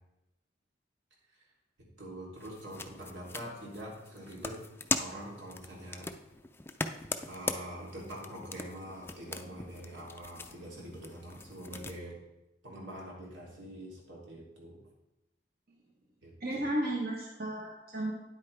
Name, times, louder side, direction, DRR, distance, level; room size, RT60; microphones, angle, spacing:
voice 1, 1.8-4.6 5.0-6.1 7.3-12.1 12.6-14.8 16.2-16.6, right 1 dB, 85° right, -3 dB, 2.9 m, -44 dB
sound 1, 2.4-12.0, left 3 dB, 15° left, 0.4 m, -40 dB
voice 2, 16.4-18.1, right 1 dB, 55° right, -2 dB, 1.1 m, -33 dB
9.6 x 8.3 x 3.3 m, 0.95 s
head